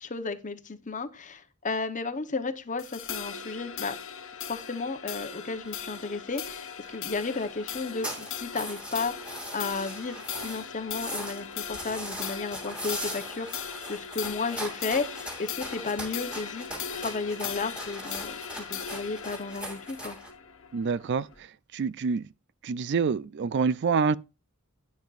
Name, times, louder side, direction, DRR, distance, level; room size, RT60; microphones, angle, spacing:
voice 1, 0.0-4.0 4.5-20.2, left 4 dB, 35° left, 0.9 m, -34 dB
sound 1, 2.8-21.4, left 7 dB, 60° left, 1.3 m, -39 dB
sound 2, 5.6-5.7 5.9-6.0 6.3-6.4 6.7-6.9 7.2-10.6 10.9-20.3, equal, 5° right, 2.7 m, -40 dB
voice 2, 20.7-21.3 21.7-22.3 22.6-24.2, right 5 dB, 50° right, 0.4 m, -26 dB
11.5 x 9.5 x 2.5 m
head